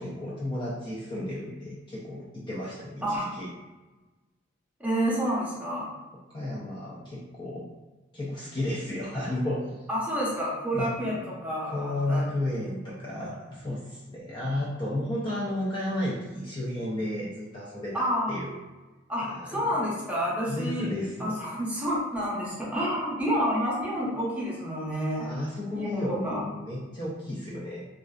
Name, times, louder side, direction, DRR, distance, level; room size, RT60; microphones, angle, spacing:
voice 1, 0.0-3.5 6.3-7.7 8.1-9.9 10.7-11.1 11.6-18.5 19.2-20.0 20.5-21.4 25.2-27.8, left 1 dB, 25° left, -6 dB, 0.3 m, -33 dB
voice 2, 4.8-5.9 9.9-12.2 17.9-18.3 19.1-20.9 21.2-25.3 25.7-26.5, equal, 5° right, -6 dB, 0.6 m, -29 dB
2.4 x 2.3 x 2.3 m, 1.2 s
head